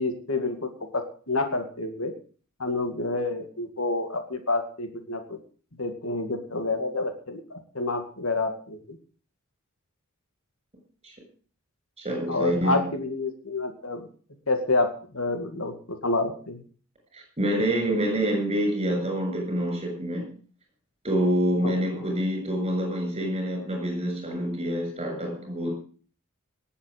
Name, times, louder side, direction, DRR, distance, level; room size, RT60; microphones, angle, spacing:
voice 1, 0.0-2.1 2.6-5.4 5.8-9.0 12.3-14.1 14.5-16.6 21.6-21.7, left 2 dB, 65° left, 6 dB, 2.3 m, -28 dB
voice 2, 12.0-12.8 17.1-20.3 21.0-25.7, right 1 dB, 25° right, 3 dB, 7.3 m, -27 dB
18.5 x 8.4 x 6.7 m, 0.42 s
head